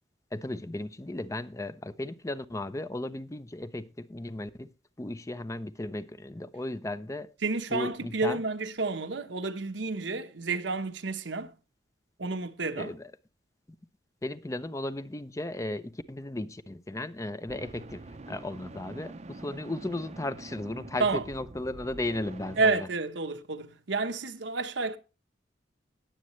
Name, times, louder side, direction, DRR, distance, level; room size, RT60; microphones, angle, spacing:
voice 1, 0.3-4.7 5.0-7.3 7.7-8.4 12.8-13.1 14.2-22.8, left 1 dB, 15° left, 0.6 m, -35 dB
voice 2, 7.4-11.5 12.2-12.9 21.0-21.2 22.6-25.0, right 3 dB, 75° right, 1.1 m, -30 dB
sound 1, 17.5-22.7, right 2 dB, 35° right, 0.7 m, -45 dB
19.5 x 7.6 x 3.1 m
head